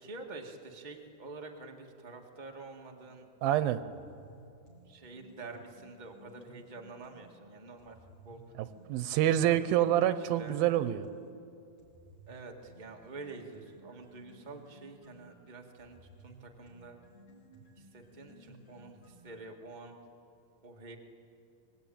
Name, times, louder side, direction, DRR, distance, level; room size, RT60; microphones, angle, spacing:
voice 1, 0.0-3.2 4.8-8.0 8.2-8.4 9.2-10.6 12.3-17.0 17.8-20.0 20.6-21.0, right 3 dB, 50° right, 2 dB, 0.5 m, -47 dB
voice 2, 3.4-3.8 8.9-11.1, right 12 dB, 80° right, 12 dB, 2.5 m, -27 dB
sound 1, 3.8-7.3 7.8-11.3 11.8-19.6, right 1 dB, 45° left, 5.7 m, -57 dB
25.0 x 21.5 x 9.1 m, 2.7 s
omnidirectional pair, 4.3 m